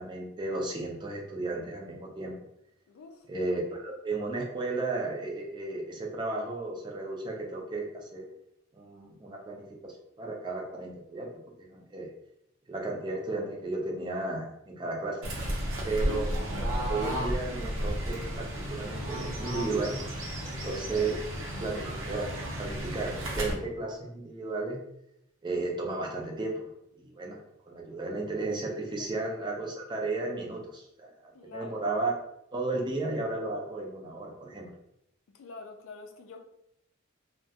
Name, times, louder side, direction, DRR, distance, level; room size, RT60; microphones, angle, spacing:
voice 1, 0.0-2.3 3.3-8.2 8.7-9.7 10.2-11.3 11.6-12.1 12.7-15.3 15.9-16.3 16.9-20.0 20.4-21.2 21.6-22.3 22.6-24.8 25.4-26.7 27.0-27.4 27.7-32.1 32.5-34.7, right 3 dB, 20° right, -1 dB, 0.4 m, -34 dB
voice 2, 2.9-3.3 29.0-29.1 31.3-31.8 35.3-36.4, left 4 dB, 75° left, 5 dB, 0.4 m, -46 dB
Fowl / Bird, 15.2-23.5, equal, 70° right, 0.7 m, -33 dB
2.3 x 2.1 x 2.7 m, 0.77 s
head